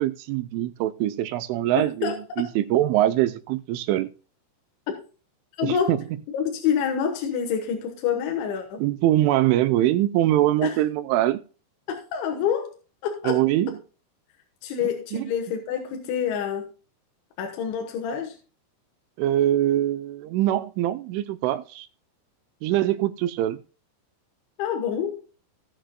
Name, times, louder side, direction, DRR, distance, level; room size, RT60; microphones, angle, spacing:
voice 1, 0.0-4.1 5.6-6.0 8.8-11.4 13.3-13.8 15.1-15.3 19.2-21.9 22.6-23.6, right 13 dB, 85° right, 3.0 m, -23 dB
voice 2, 2.0-2.5 5.6-6.0 6.3-8.8 10.6-10.8 11.9-12.7 13.0-13.4 14.6-16.7 17.4-18.4 24.6-25.2, left 8 dB, 75° left, 3.5 m, -27 dB
18.0 x 6.4 x 2.2 m
omnidirectional pair, 5.6 m